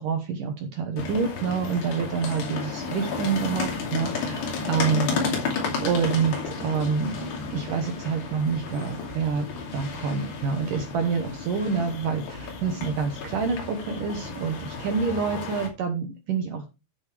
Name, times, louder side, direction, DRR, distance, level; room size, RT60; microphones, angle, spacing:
voice 1, 0.0-5.6 5.8-9.5 9.7-16.6, right 6 dB, 70° right, 5 dB, 2.1 m, -27 dB
sound 1, 1.0-15.7, left 4 dB, 65° left, 4.6 m, -32 dB
13.0 x 6.7 x 3.4 m, 0.28 s
omnidirectional pair, 5.2 m